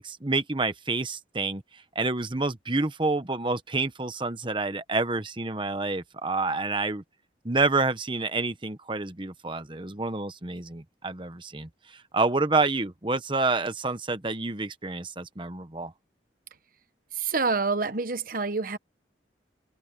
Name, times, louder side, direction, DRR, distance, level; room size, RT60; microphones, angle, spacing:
voice 1, 0.0-1.6 1.9-7.0 7.4-11.7 12.1-15.9, right 3 dB, 25° right, 1.2 m, -28 dB
voice 2, 17.2-18.8, right 4 dB, 50° right, 1.1 m, -27 dB
head